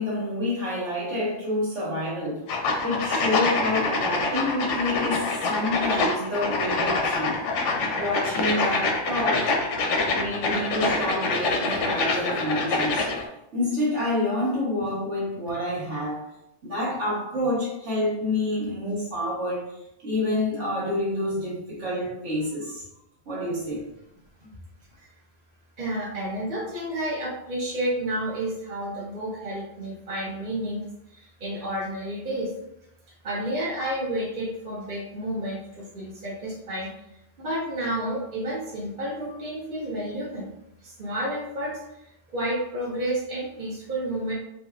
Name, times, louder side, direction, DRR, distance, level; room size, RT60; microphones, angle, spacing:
voice 1, 0.0-2.5 2.8-7.4 7.9-9.6 10.1-13.1 13.5-16.3 16.6-19.6 20.0-22.8 23.3-23.8, left 1 dB, 80° right, -6 dB, 1.8 m, -28 dB
sound 1, 2.5-13.2, left 3 dB, 85° left, 1.0 m, -25 dB
voice 2, 25.8-30.8 31.1-32.5 33.2-36.9 37.4-40.5 40.8-41.8 42.3-44.3, right 1 dB, 45° right, -5 dB, 1.1 m, -30 dB
4.1 x 2.7 x 2.4 m, 0.81 s
omnidirectional pair, 1.2 m